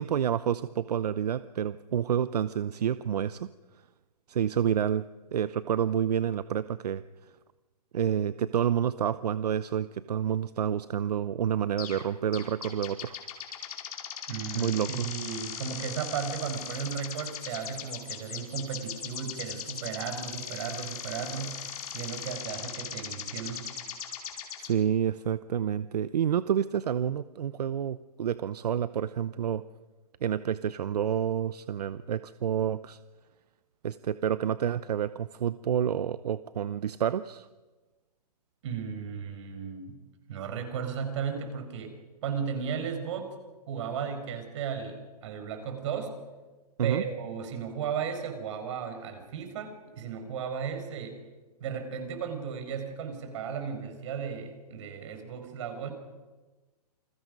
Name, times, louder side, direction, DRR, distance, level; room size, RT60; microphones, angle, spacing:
voice 1, 0.0-3.5 4.3-5.0 5.3-7.0 7.9-13.2 14.5-15.1 24.6-29.6 30.2-33.0 33.8-37.5 46.8-47.0, right 9 dB, 75° right, 14 dB, 0.8 m, -29 dB
sound 1, 11.8-12.0 12.3-24.7, left 8 dB, 65° left, 4.8 m, -39 dB
voice 2, 14.3-23.7 38.6-40.0 40.3-43.3 43.7-46.2 46.8-51.2 51.6-55.9, right 7 dB, 50° right, 6 dB, 5.0 m, -35 dB
28.5 x 22.0 x 5.4 m, 1.2 s
hypercardioid pair, 155°, 20 cm